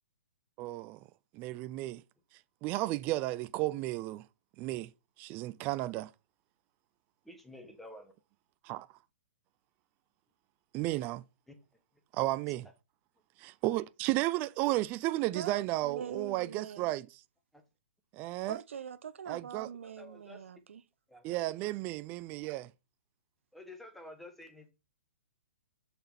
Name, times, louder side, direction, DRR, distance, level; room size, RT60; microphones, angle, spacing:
voice 1, 0.6-1.0 1.3-2.0 2.6-4.3 4.6-4.9 5.2-6.1 8.6-8.9 10.7-11.2 12.1-12.7 13.4-17.1 18.1-18.6 19.3-19.7 21.2-22.7, right 17 dB, 25° right, 0.4 m, -33 dB
voice 2, 7.2-8.1 11.5-11.6 17.5-17.6 19.8-20.4 21.1-21.2 23.5-24.7, left 1 dB, ahead, 1.6 m, -50 dB
voice 3, 15.3-16.9 18.5-20.8, right 7 dB, 75° right, 0.9 m, -43 dB
6.7 x 6.1 x 4.3 m
hypercardioid pair, 140°, 7 cm